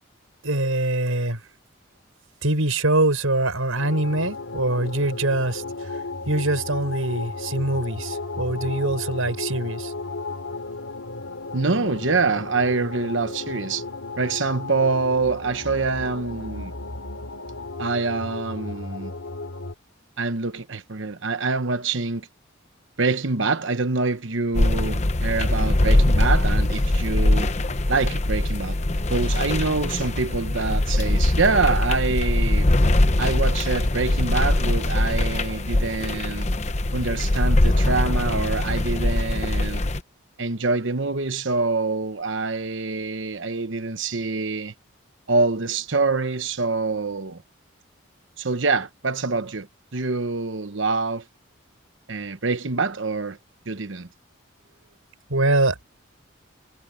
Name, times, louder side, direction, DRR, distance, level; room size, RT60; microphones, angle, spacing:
voice 1, 0.4-1.4 2.4-9.9 55.3-55.8, right 2 dB, 85° right, 5.9 m, -24 dB
sound 1, 3.7-19.7, left 3 dB, 90° left, 2.7 m, -34 dB
voice 2, 11.5-13.8 14.2-16.7 17.8-19.1 20.2-22.3 23.0-27.5 27.9-28.8 29.1-32.7 33.2-36.5 36.9-39.8 40.4-44.7 45.3-47.4 48.4-51.2 52.1-53.4 53.7-54.1, right 3 dB, 65° right, 1.0 m, -25 dB
sound 2, 24.5-40.0, left 1 dB, 35° left, 0.9 m, -22 dB
head